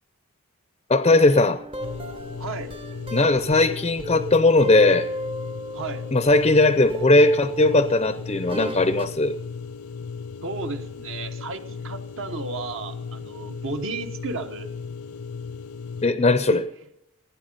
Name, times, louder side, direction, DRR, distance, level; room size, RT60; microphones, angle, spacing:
voice 1, 0.9-1.6 3.1-5.1 6.1-9.4 16.0-16.6, left 2 dB, 25° left, 12 dB, 0.5 m, -18 dB
sound 1, 1.0-6.5 6.9-9.2, right 1 dB, 25° right, 0.6 m, -35 dB
sound 2, 1.8-16.1, left 5 dB, 85° left, 0.6 m, -36 dB
voice 2, 2.4-2.7 5.7-6.0 10.4-14.7 16.5-16.6, right 3 dB, 60° right, 7 dB, 1.0 m, -33 dB
16.0 x 9.5 x 5.3 m, 0.81 s
head